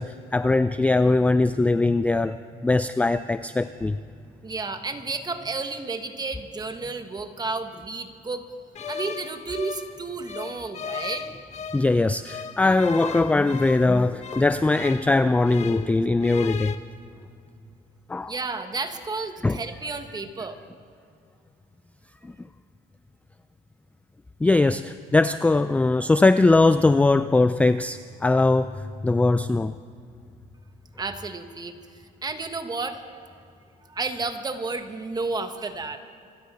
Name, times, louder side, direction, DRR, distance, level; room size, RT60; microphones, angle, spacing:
voice 1, 0.0-4.0 11.7-16.7 18.1-18.3 19.4-19.6 22.2-22.3 24.4-29.7, left 2 dB, 10° left, 12 dB, 0.3 m, -21 dB
voice 2, 4.4-8.4 8.9-11.3 18.3-20.6 31.0-31.8 32.2-33.0 33.9-36.0, right 3 dB, 25° right, 7 dB, 1.3 m, -32 dB
sound 1, 8.8-11.9 12.3-15.9 16.2-16.8, left 7 dB, 40° left, 1.0 m, -37 dB
26.0 x 12.5 x 4.2 m, 2.3 s
cardioid pair, 110°, 17 cm